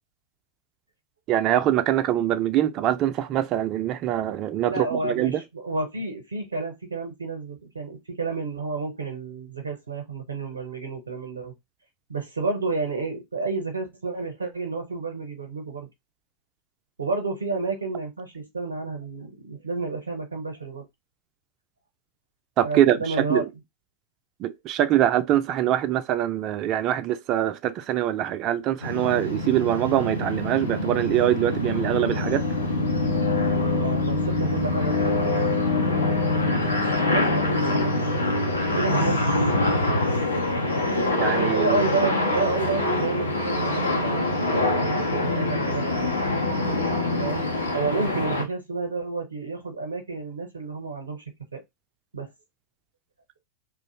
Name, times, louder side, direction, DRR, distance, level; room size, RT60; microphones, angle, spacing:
voice 1, 1.3-5.4 22.6-23.4 24.4-32.4 41.2-41.8, right 12 dB, 35° right, 0.3 m, -23 dB
voice 2, 4.6-11.5 12.1-15.9 17.0-20.9 22.6-23.4 33.7-35.6 37.1-38.2 38.7-39.6 41.1-46.1 47.2-47.5 47.7-51.2 51.5-51.6 52.1-52.3, right 3 dB, 75° right, 0.6 m, -30 dB
sound 1, 28.8-48.4, left 2 dB, 80° left, 0.6 m, -24 dB
2.4 x 2.0 x 2.8 m
figure-of-eight pair, 90°, 0 cm